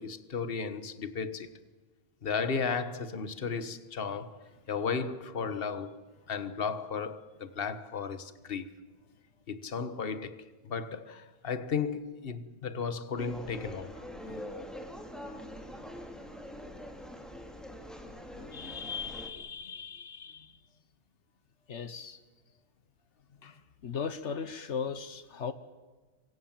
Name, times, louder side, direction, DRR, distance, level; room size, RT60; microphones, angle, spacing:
voice 1, 0.0-1.5 2.2-4.4 4.7-8.7 9.5-14.0 18.5-20.5 23.4-23.6, left 5 dB, 55° left, 1.5 m, -35 dB
sound 1, 13.2-19.3, equal, ahead, 3.1 m, -44 dB
voice 2, 21.7-22.2 23.8-25.5, left 6 dB, 80° left, 1.4 m, -37 dB
27.5 x 24.5 x 7.4 m
omnidirectional pair, 1.2 m